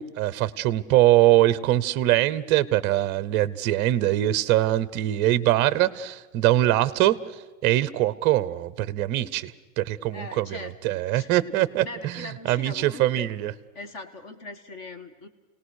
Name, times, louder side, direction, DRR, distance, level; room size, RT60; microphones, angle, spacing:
voice 1, 0.0-13.5, right 14 dB, 25° right, 17 dB, 0.7 m, -23 dB
voice 2, 10.1-11.3 11.8-13.3 13.7-15.3, left 2 dB, 35° left, 7 dB, 2.1 m, -40 dB
29.0 x 19.0 x 6.4 m, 1.2 s
supercardioid pair, 165°, 41 cm